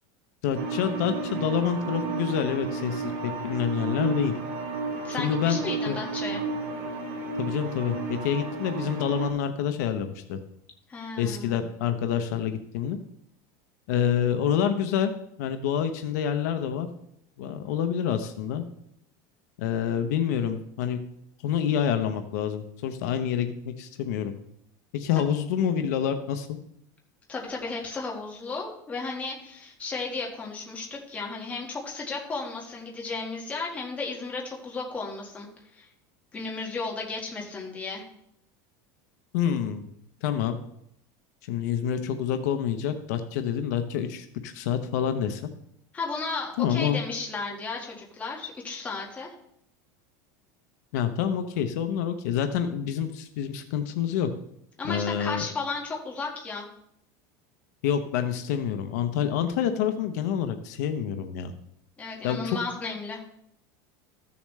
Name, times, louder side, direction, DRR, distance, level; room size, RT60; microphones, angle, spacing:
voice 1, 0.4-4.3 5.2-6.0 7.4-10.4 11.2-13.0 13.9-15.1 15.4-16.9 17.4-18.6 19.6-21.0 21.4-24.3 24.9-26.5 39.3-39.9 40.2-40.6 41.4-45.4 46.6-47.0 50.9-54.3 54.9-55.4 57.8-61.5 62.2-62.6, left 8 dB, 65° left, 7 dB, 0.8 m, -27 dB
sound 1, 0.5-9.3, right 4 dB, 50° right, 2.3 m, -32 dB
voice 2, 5.0-6.4 10.9-11.5 25.1-25.3 27.3-35.9 36.3-38.0 45.9-49.3 54.8-56.7 62.0-63.2, left 4 dB, 15° left, -2 dB, 1.7 m, -34 dB
14.0 x 7.0 x 3.2 m, 0.74 s
supercardioid pair, 170°, 10 cm